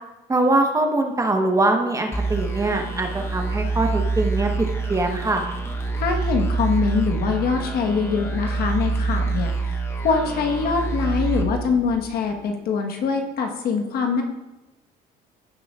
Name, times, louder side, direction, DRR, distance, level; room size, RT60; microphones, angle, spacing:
voice 1, 0.3-5.4, right 2 dB, 20° right, 3 dB, 1.1 m, -22 dB
sound 1, 2.1-12.4, right 3 dB, 15° left, 0.9 m, -26 dB
voice 2, 6.0-14.2, left 5 dB, 65° left, 3 dB, 1.3 m, -24 dB
16.0 x 6.3 x 2.4 m, 1.0 s
cardioid pair, 110°, 17 cm